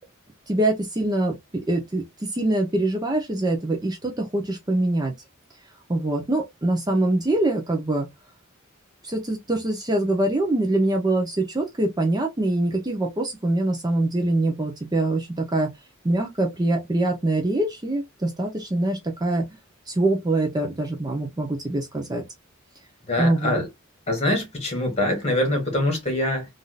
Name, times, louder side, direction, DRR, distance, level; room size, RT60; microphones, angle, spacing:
voice 1, 0.5-1.3 1.7-5.1 5.9-8.1 9.0-15.7 16.0-19.4 19.9-22.2 23.2-23.6, right 2 dB, 20° right, 0.7 m, -24 dB
voice 2, 23.1-23.7 24.1-26.5, left 1 dB, 30° left, 1.7 m, -24 dB
3.6 x 2.6 x 2.3 m
head